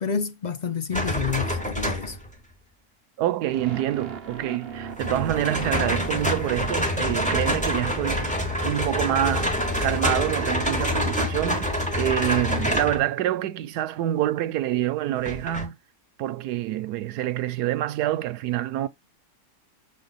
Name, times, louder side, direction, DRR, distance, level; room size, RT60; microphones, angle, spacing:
voice 1, 0.0-2.2, left 6 dB, 40° left, 0.6 m, -29 dB
sound 1, 0.9-2.3 5.0-13.0 15.2-15.7, equal, 5° left, 1.9 m, -26 dB
voice 2, 3.2-9.5 9.8-15.8 16.2-18.9, right 13 dB, 85° right, 1.2 m, -27 dB
sound 2, 3.5-7.6, right 6 dB, 40° right, 1.2 m, -38 dB
7.7 x 3.6 x 4.0 m
omnidirectional pair, 1.7 m